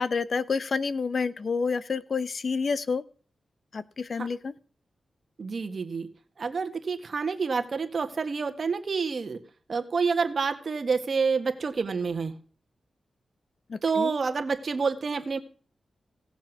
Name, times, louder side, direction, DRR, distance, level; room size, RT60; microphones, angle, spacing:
voice 1, 0.0-3.0 3.7-4.5 13.7-14.1, left 5 dB, 60° left, 16 dB, 0.8 m, -29 dB
voice 2, 5.4-6.1 6.4-9.4 9.7-12.3 13.8-15.4, right 5 dB, 60° right, 7 dB, 1.7 m, -28 dB
17.0 x 7.2 x 6.1 m, 0.42 s
cardioid pair, 60°, 0 cm